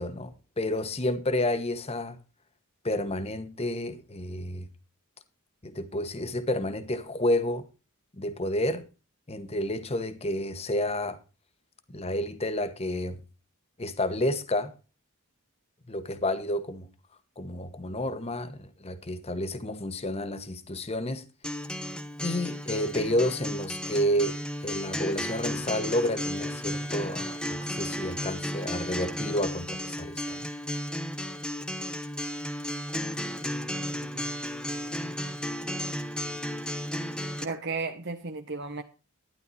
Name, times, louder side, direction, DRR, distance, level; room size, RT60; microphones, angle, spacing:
voice 1, 0.0-2.2 2.8-4.7 5.6-7.6 8.1-8.9 9.3-11.2 11.9-13.2 13.8-14.7 15.9-16.9 17.4-21.2 22.2-30.5, left 1 dB, 25° left, 1.1 m, -30 dB
Acoustic guitar, 21.4-37.4, equal, 5° left, 0.9 m, -34 dB
voice 2, 37.4-38.8, right 4 dB, 50° right, 1.0 m, -34 dB
12.0 x 10.5 x 4.1 m
head